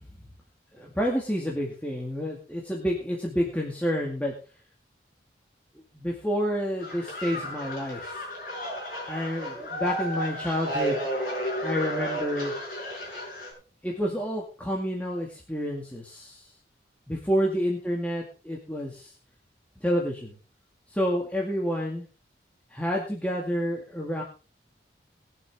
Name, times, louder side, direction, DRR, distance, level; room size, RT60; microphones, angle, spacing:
voice 1, 0.7-4.3 5.7-8.2 9.1-11.1 11.6-12.5 13.8-16.5 17.1-19.1 19.8-20.4 20.9-22.0 22.7-24.2, equal, 10° left, -2 dB, 2.2 m, -29 dB
sound 1, 6.8-13.5, equal, 50° left, 7.0 m, -33 dB
20.5 x 7.5 x 3.7 m, 0.35 s
head